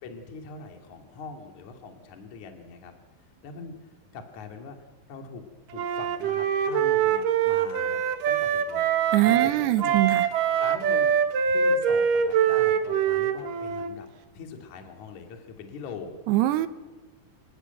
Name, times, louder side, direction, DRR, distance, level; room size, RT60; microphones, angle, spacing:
voice 1, 0.0-2.9 3.4-3.7 4.1-4.8 5.1-5.4 5.7-8.0 8.3-8.9 9.2-10.0 10.6-11.1 11.5-14.1 14.3-16.2, left 5 dB, 50° left, 4 dB, 3.3 m, -42 dB
Wind instrument woodwind instrument, 5.7-9.6 9.8-13.9, right 7 dB, 65° right, 2.5 m, -24 dB
voice 2, 9.1-10.3 16.3-16.7, right 15 dB, 80° right, 12 dB, 3.1 m, -22 dB
28.5 x 17.0 x 9.3 m, 1.2 s
omnidirectional pair, 5.0 m